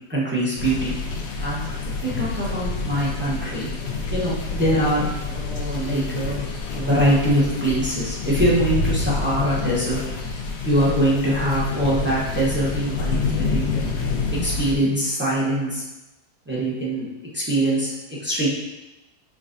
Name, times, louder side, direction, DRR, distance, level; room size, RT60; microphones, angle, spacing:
voice 1, 0.1-0.9 1.4-1.6 2.0-3.7 4.1-6.4 6.7-10.0 10.6-13.9 14.3-15.8 16.5-17.1 17.3-17.9 18.2-18.5, right 1 dB, 10° right, -8 dB, 0.7 m, -23 dB
sound 1, 0.6-14.7, left 4 dB, 90° left, 1.3 m, -27 dB
5.8 x 3.3 x 2.6 m, 1.0 s
omnidirectional pair, 1.8 m